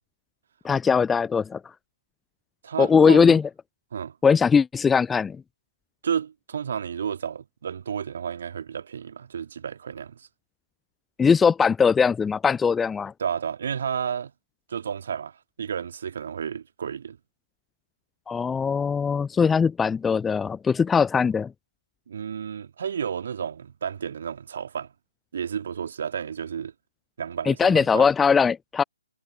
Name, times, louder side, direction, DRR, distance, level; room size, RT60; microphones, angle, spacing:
voice 1, 0.6-1.6 2.8-3.4 4.2-5.4 11.2-13.1 18.3-21.5 27.5-28.8, left 6 dB, 10° left, 0.3 m, -20 dB
voice 2, 2.6-3.4 3.9-4.2 6.0-10.3 13.2-14.3 14.7-17.2 22.1-24.9 25.3-26.7 27.2-28.1, right 7 dB, 50° right, 2.4 m, -31 dB
figure-of-eight pair, 135°, 0 cm